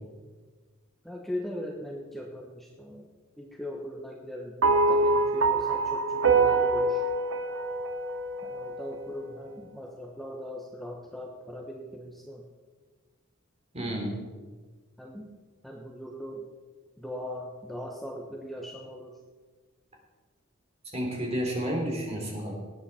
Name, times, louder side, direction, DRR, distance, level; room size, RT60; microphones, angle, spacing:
voice 1, 1.0-3.1 3.4-7.0 8.4-12.4 15.0-15.3 15.6-16.5 17.0-19.2, equal, ahead, -1 dB, 1.0 m, -39 dB
sound 1, 4.6-9.0, right 3 dB, 65° right, 0.9 m, -25 dB
voice 2, 13.7-14.1 20.9-22.5, equal, 30° right, 0 dB, 3.3 m, -31 dB
18.5 x 8.7 x 4.3 m, 1.4 s
head